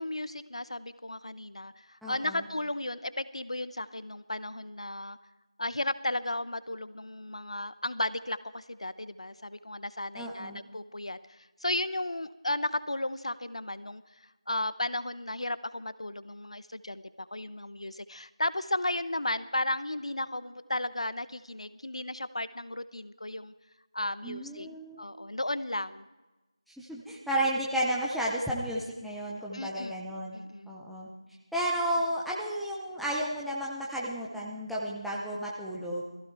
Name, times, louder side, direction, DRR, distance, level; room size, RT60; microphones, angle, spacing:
voice 1, 0.0-5.2 5.6-23.5 23.9-24.7 25.0-26.0 29.5-30.0 30.3-30.7, left 1 dB, 70° left, 14 dB, 1.0 m, -34 dB
voice 2, 2.0-2.4 10.2-10.6 24.2-25.0 26.8-30.4 30.7-31.1 31.5-36.0, right 1 dB, ahead, -7 dB, 0.4 m, -32 dB
18.5 x 15.0 x 4.5 m, 1.1 s
figure-of-eight pair, 175°, 3 cm